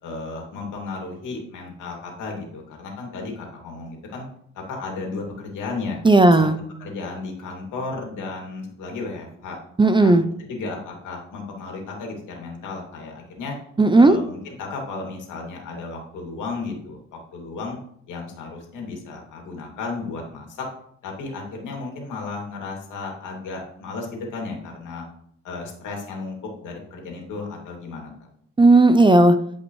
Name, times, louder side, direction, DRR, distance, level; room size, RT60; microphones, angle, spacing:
voice 1, 0.0-4.2 4.5-6.0 6.4-6.5 6.8-9.6 10.0-13.6 14.0-17.8 18.1-20.7 21.0-25.0 25.4-26.4 26.6-28.1, left 3 dB, 80° left, 0 dB, 2.5 m, -34 dB
voice 2, 6.0-6.6 9.8-10.2 13.8-14.2 28.6-29.4, right 2 dB, 15° right, 11 dB, 0.5 m, -14 dB
11.5 x 5.2 x 3.2 m, 0.68 s
cardioid pair, 90°, 30 cm